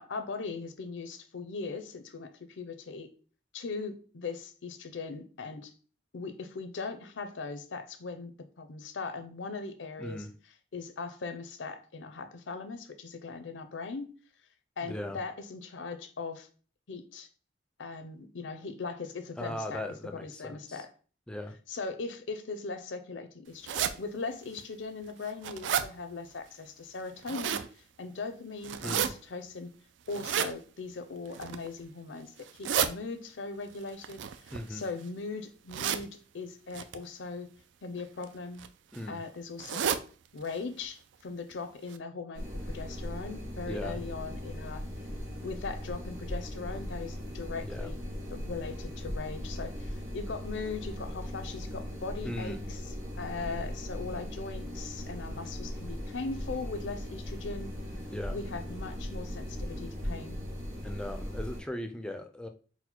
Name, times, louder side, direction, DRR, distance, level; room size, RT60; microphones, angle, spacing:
voice 1, 0.0-3.1 3.5-5.7 6.1-10.3 10.7-14.1 14.8-16.5 16.9-17.3 17.8-19.8 20.1-20.9 21.7-27.6 28.0-29.7 30.1-37.5 37.8-38.6 39.1-39.9 40.3-44.8 45.4-48.0 48.3-52.8 53.1-57.7 58.3-60.4, left 4 dB, 90° left, 8 dB, 0.6 m, -39 dB
voice 2, 10.0-10.3 14.8-15.2 19.4-20.8 21.3-21.5 28.8-29.1 34.5-34.8 38.9-39.2 43.7-44.0 47.6-47.9 52.2-52.6 58.1-58.4 60.8-62.5, left 1 dB, 5° left, 6 dB, 0.3 m, -38 dB
sound 1, 23.6-23.9 24.6-24.7 25.1-25.9 27.0-27.7 28.6-29.1 30.1-30.5 31.3-31.7 32.4-32.9 34.0-35.0 35.7-36.0 36.7-37.0 38.0-38.2 38.6-38.7 38.9-39.0 39.6-40.0 40.4-40.6 40.8-40.9 41.5-41.6 41.9-42.0, right 8 dB, 80° right, 0.3 m, -31 dB
sound 2, 42.3-61.6, equal, 50° right, 1.6 m, -38 dB
4.2 x 2.1 x 4.3 m, 0.40 s
head